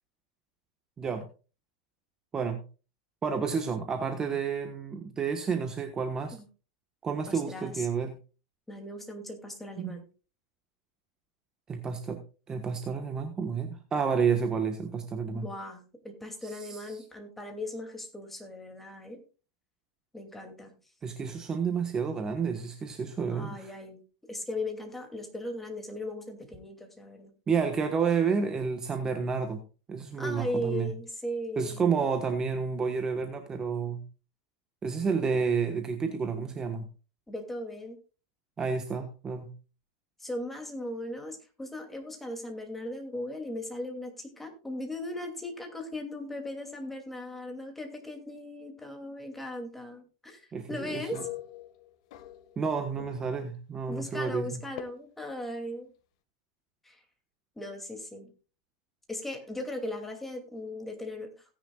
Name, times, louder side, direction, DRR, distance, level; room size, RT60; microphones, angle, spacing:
voice 1, 3.2-6.4 7.0-8.2 9.8-10.0 11.7-12.2 12.5-15.5 16.4-17.0 21.0-23.8 27.5-29.6 29.9-30.9 31.6-34.0 34.8-36.9 38.6-39.5 50.5-51.2 52.6-54.6, right 5 dB, 20° right, 5 dB, 1.3 m, -30 dB
voice 2, 7.3-7.9 8.7-10.0 15.3-19.2 20.1-20.7 23.3-24.0 24.3-27.3 30.2-32.0 37.3-38.0 40.2-51.3 53.9-55.9 56.8-57.0 57.6-58.3 59.1-61.3, left 1 dB, 5° left, 4 dB, 2.6 m, -38 dB
sound 1, 51.1-52.7 53.0-53.4 54.8-54.9, left 14 dB, 65° left, 1.7 m, -43 dB
17.0 x 10.0 x 2.4 m, 0.34 s
supercardioid pair, 140°, 3 cm